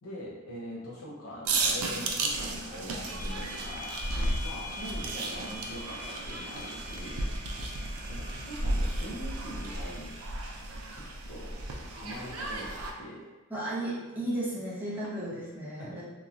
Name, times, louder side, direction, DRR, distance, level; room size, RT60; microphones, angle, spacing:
voice 1, 0.0-4.0 4.4-7.2 8.1-10.1 10.9-11.6 11.9-13.3 15.8-16.0, equal, 75° left, -4 dB, 0.7 m, -43 dB
sound 1, 1.4-12.9, right 2 dB, 85° right, 0.4 m, -34 dB
sound 2, 3.0-10.6, left 1 dB, 40° left, 0.5 m, -45 dB
voice 2, 13.5-16.0, right 1 dB, 10° right, -8 dB, 0.6 m, -34 dB
2.9 x 2.2 x 2.5 m, 1.2 s
head